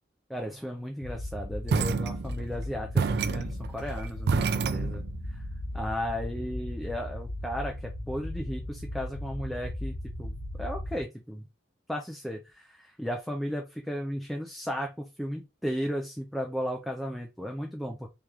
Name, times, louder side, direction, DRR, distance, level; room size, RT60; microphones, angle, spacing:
voice 1, 0.3-5.0 5.3-5.4 5.7-11.4 11.9-18.1, equal, ahead, 1 dB, 0.5 m, -35 dB
sound 1, 1.0-11.0, left 1 dB, 85° left, 0.8 m, -37 dB
sound 2, 1.7-2.6 3.0-5.3, right 5 dB, 60° right, 0.4 m, -28 dB
3.3 x 3.0 x 3.6 m, 0.25 s
head